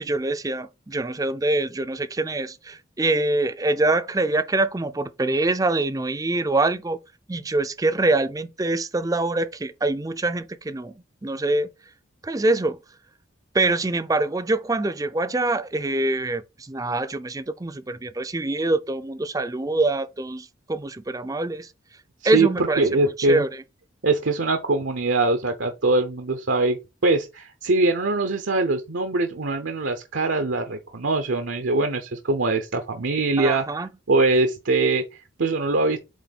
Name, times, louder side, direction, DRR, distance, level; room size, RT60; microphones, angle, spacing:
voice 1, 0.0-7.0 7.3-10.9 11.2-11.7 12.2-12.8 13.5-21.7 22.2-23.6 33.4-33.9, right 2 dB, 20° right, 0.4 m, -24 dB
voice 2, 22.8-23.4 24.0-36.0, right 3 dB, 75° right, 0.8 m, -23 dB
8.2 x 3.6 x 4.1 m
head